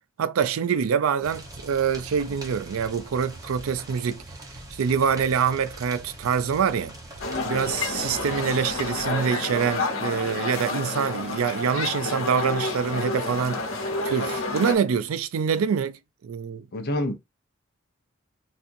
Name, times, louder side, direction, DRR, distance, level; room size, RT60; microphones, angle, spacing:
voice 1, 0.2-4.2 4.7-6.9 7.4-16.7, right 7 dB, 85° right, 0.4 m, -25 dB
sound 1, 1.2-9.1, right 1 dB, 20° right, 0.9 m, -43 dB
sound 2, 7.2-14.8, left 3 dB, 85° left, 1.0 m, -29 dB
voice 2, 16.7-17.1, left 1 dB, 50° left, 0.8 m, -27 dB
4.1 x 2.5 x 2.5 m
head